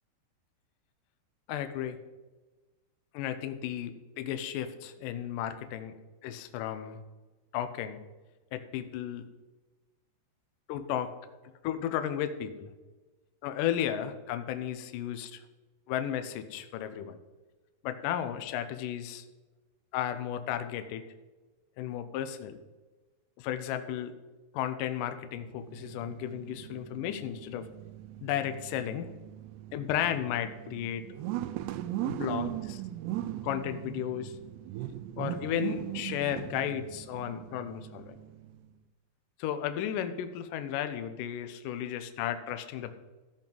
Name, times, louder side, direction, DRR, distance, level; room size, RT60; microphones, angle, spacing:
voice 1, 1.5-2.0 3.1-5.9 6.2-7.0 7.5-8.0 8.5-9.3 10.7-11.1 11.6-12.7 13.4-15.4 15.9-17.2 17.8-19.3 19.9-21.0 21.8-22.6 23.4-24.1 24.5-27.7 28.2-29.1 29.7-31.1 32.0-32.8 33.4-34.3 35.2-38.2 39.4-42.9, left 10 dB, 80° left, 8 dB, 2.0 m, -34 dB
sound 1, 25.3-38.7, right 13 dB, 85° right, 2.7 m, -39 dB
15.0 x 5.4 x 5.3 m, 1.2 s
omnidirectional pair, 4.7 m